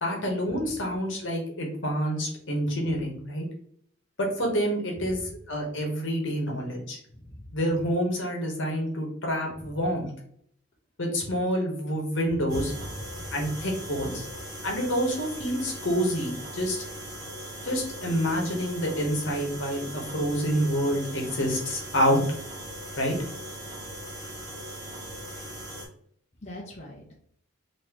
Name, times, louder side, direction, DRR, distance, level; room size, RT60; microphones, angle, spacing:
voice 1, 0.0-3.5 4.2-5.2 5.5-7.0 7.5-10.1 11.0-12.7 13.3-14.3 14.6-16.8 17.6-22.2 23.0-23.2, equal, 65° left, 0 dB, 1.1 m, -27 dB
voice 2, 12.5-12.8 13.1-13.5 26.4-27.2, equal, 35° left, -4 dB, 0.7 m, -39 dB
sound 1, 12.5-25.9, right 1 dB, 35° right, 1.4 m, -39 dB
3.7 x 2.9 x 3.0 m, 0.63 s
head